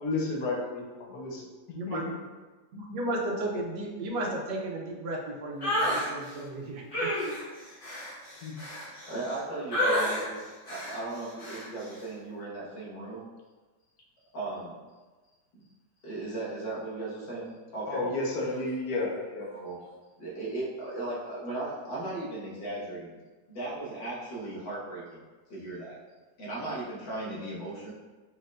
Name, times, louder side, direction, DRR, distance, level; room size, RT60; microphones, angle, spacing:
voice 1, 0.0-1.4 1.7-2.0 8.4-8.5 17.9-19.5, left 2 dB, 60° left, -2 dB, 1.2 m, -32 dB
voice 2, 2.7-7.1, right 1 dB, 80° right, 0 dB, 1.4 m, -34 dB
sound 1, 5.6-6.1 6.9-9.4 9.7-10.3 10.7-11.0 11.4-11.7, equal, 30° left, 1.4 m, -29 dB
voice 3, 9.1-13.2 14.3-14.7 15.5-15.7 16.0-18.0 19.5-19.8 20.2-23.2 23.5-25.2 25.5-26.0 26.4-27.9, right 2 dB, 85° left, -7 dB, 2.1 m, -37 dB
4.8 x 4.4 x 2.4 m, 1.3 s
omnidirectional pair, 1.9 m